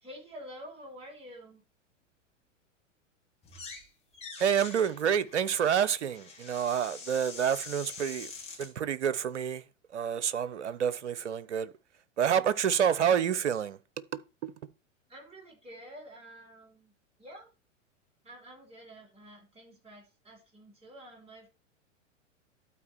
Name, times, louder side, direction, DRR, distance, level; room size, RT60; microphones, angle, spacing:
voice 1, 0.0-1.6 15.1-16.9 17.2-17.5 18.2-21.5, equal, 15° right, 3.4 m, -49 dB
sound 1, 3.4-3.9 4.1-8.7, left 4 dB, 15° left, 2.9 m, -45 dB
voice 2, 4.4-8.3 8.6-9.6 9.9-11.7 12.2-13.8 14.1-14.5, right 8 dB, 65° right, 0.8 m, -28 dB
12.0 x 4.4 x 4.4 m
figure-of-eight pair, 100°, 38 cm